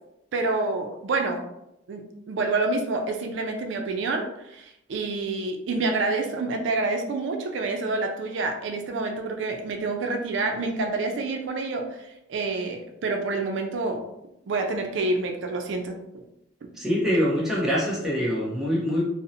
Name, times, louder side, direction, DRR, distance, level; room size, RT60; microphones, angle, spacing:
voice 1, 0.3-1.4 1.9-2.0 2.3-14.0 14.5-16.2, right 3 dB, 80° right, 4 dB, 0.4 m, -28 dB
voice 2, 16.8-19.0, equal, ahead, -6 dB, 0.7 m, -24 dB
2.6 x 2.0 x 2.6 m, 0.85 s
head